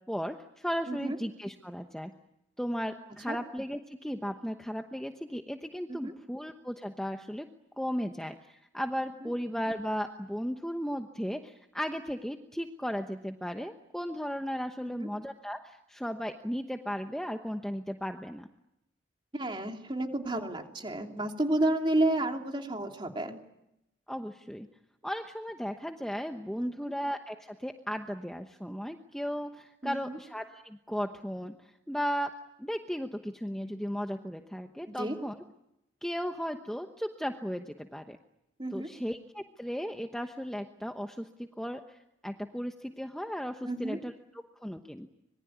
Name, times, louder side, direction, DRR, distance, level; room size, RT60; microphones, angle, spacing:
voice 1, 0.1-2.1 2.6-7.5 7.8-18.5 24.1-24.7 25.0-32.3 32.6-35.4 36.0-38.2 38.7-41.3 41.6-42.0 42.2-45.1, equal, 5° left, 4 dB, 1.0 m, -36 dB
voice 2, 19.3-23.4 26.6-26.9 29.8-30.2 34.9-35.2 38.6-38.9 43.6-44.0, right 1 dB, 25° right, 3 dB, 3.0 m, -31 dB
26.0 x 22.5 x 9.5 m, 0.86 s
head